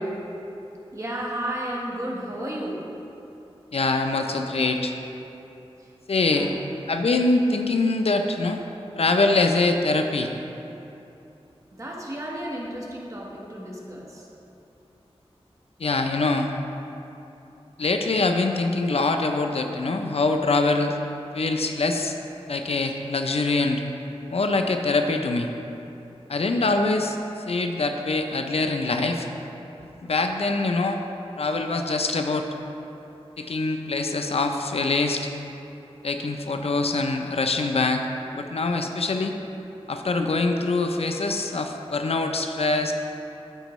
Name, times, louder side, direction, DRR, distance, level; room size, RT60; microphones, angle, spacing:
voice 1, 0.9-2.9 5.8-5.9 6.2-6.6 11.7-14.3, right 1 dB, 30° right, -3 dB, 1.2 m, -33 dB
voice 2, 3.7-4.9 6.1-6.5 6.9-8.6 9.0-10.3 15.8-16.5 17.8-20.9 21.3-22.1 22.5-23.8 24.3-25.5 26.3-27.2 27.5-29.3 30.0-31.0 31.4-32.5 33.4-35.3 36.0-38.0 38.3-39.3 39.9-42.9, left 3 dB, 70° left, 5 dB, 0.5 m, -24 dB
13.0 x 4.5 x 3.1 m, 2.9 s
wide cardioid pair, 80°, 11 cm